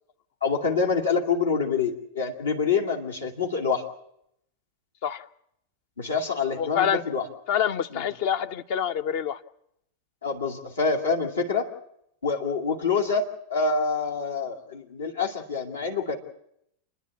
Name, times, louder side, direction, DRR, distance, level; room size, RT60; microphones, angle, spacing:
voice 1, 0.4-3.8 6.0-7.2 7.9-8.0 10.2-11.7 12.2-16.2, left 5 dB, 70° left, 1 dB, 2.5 m, -26 dB
voice 2, 6.6-7.0 7.5-9.4, left 8 dB, 50° left, 11 dB, 0.8 m, -26 dB
28.0 x 10.5 x 9.7 m, 0.76 s
figure-of-eight pair, 90°, 0 cm